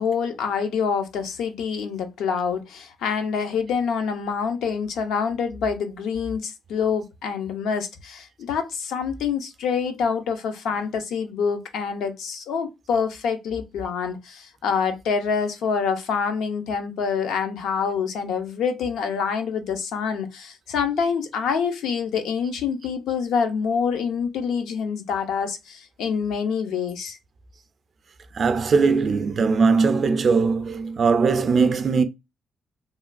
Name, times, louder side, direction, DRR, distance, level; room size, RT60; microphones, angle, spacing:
voice 1, 0.0-27.2, left 6 dB, 80° left, 0.6 m, -26 dB
voice 2, 28.3-32.0, right 4 dB, 50° right, 0.4 m, -20 dB
3.1 x 2.2 x 2.4 m
cardioid pair, 90°, 0 cm